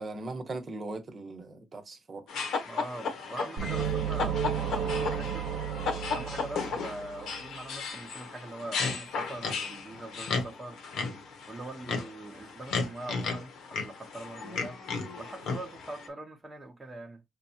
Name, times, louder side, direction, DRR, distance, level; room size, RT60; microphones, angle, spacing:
voice 1, 0.0-2.2, right 2 dB, 40° right, 1.0 m, -39 dB
sound 1, 2.3-16.1, left 4 dB, 80° left, 1.2 m, -35 dB
voice 2, 2.6-5.6 6.1-10.8 11.5-14.8 15.2-17.2, right 2 dB, 15° right, 0.9 m, -42 dB
sound 2, 3.6-7.3, right 8 dB, 80° right, 0.7 m, -32 dB
5.3 x 2.2 x 2.7 m
cardioid pair, 90°, 0 cm